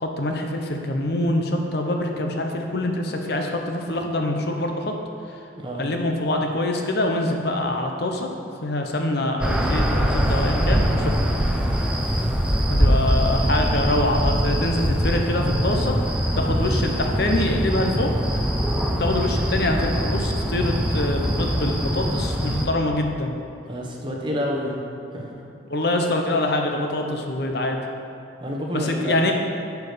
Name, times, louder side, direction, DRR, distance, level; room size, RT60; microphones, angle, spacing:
voice 1, 0.0-4.9 5.3-5.4 5.8-8.3 8.6-11.2 12.7-16.0 16.3-18.1 19.0-23.3 25.7-27.8 28.7-29.3, left 1 dB, 55° left, 2 dB, 0.8 m, -25 dB
sound 1, 9.4-22.7, equal, 5° right, 0.5 m, -22 dB
voice 2, 23.7-24.8 25.1-25.3 28.4-29.2, equal, 25° right, -1 dB, 1.0 m, -28 dB
11.0 x 4.8 x 5.1 m, 2.8 s
head